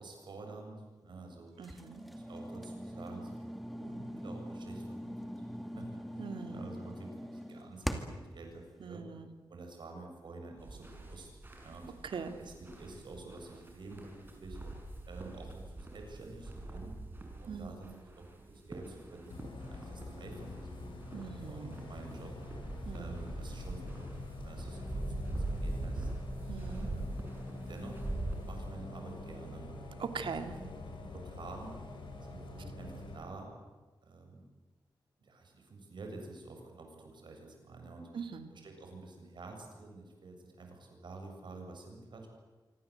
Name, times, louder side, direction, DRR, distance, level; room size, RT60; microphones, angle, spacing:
voice 1, 0.0-1.5 2.0-3.5 3.8-5.3 5.8-9.1 9.5-11.3 11.6-11.9 12.4-14.6 15.1-16.9 17.4-20.9 21.5-22.4 22.9-26.1 26.7-27.1 27.5-28.0 28.4-29.7 30.1-31.8 32.3-33.5 34.0-34.4 35.2-38.1 38.5-42.3, right 3 dB, 70° right, 3 dB, 7.4 m, -49 dB
sound 1, 1.6-8.3, equal, ahead, 2.4 m, -42 dB
voice 2, 1.6-2.0 6.2-6.7 8.8-9.3 12.0-12.4 17.5-18.0 21.1-21.7 22.8-23.2 26.5-26.9 30.0-30.6 38.1-38.5, right 6 dB, 85° right, 7 dB, 2.6 m, -41 dB
sound 2, 10.6-28.7, right 2 dB, 25° right, 6.5 m, -43 dB
Bus, 19.3-33.2, left 2 dB, 80° left, 6.2 m, -45 dB
27.0 x 25.0 x 8.1 m, 1.3 s
wide cardioid pair, 140°, 8 cm